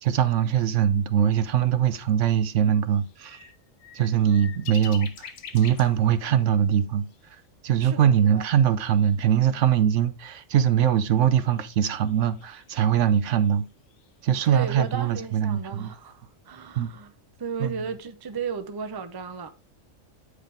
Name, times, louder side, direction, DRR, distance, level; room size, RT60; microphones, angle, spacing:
voice 1, 0.0-3.4 3.9-7.1 7.6-13.6 14.2-15.9 16.8-16.9 17.6-17.7, right 9 dB, 70° right, 0.9 m, -22 dB
sound 1, 2.3-2.4 2.9-6.0 6.4-6.5 7.1-7.4 7.7-7.8 8.0-9.2 9.7-9.8 10.9-14.1 14.6-15.9, left 7 dB, 90° left, 1.2 m, -47 dB
voice 2, 7.8-8.4 14.4-17.1 17.4-19.5, right 5 dB, 25° right, 0.5 m, -35 dB
9.1 x 4.9 x 3.3 m
omnidirectional pair, 1.3 m